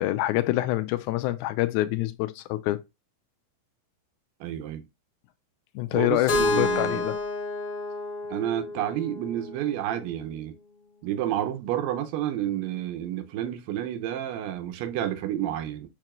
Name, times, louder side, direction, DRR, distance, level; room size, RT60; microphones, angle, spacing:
voice 1, 0.0-2.8 5.7-7.2, left 16 dB, 85° left, 1.7 m, -26 dB
voice 2, 4.4-4.8 5.9-7.1 8.3-10.5 11.0-15.9, right 11 dB, 85° right, 2.4 m, -30 dB
Keyboard (musical), 6.3-10.2, left 3 dB, 50° left, 2.0 m, -30 dB
6.6 x 3.0 x 2.4 m
omnidirectional pair, 4.0 m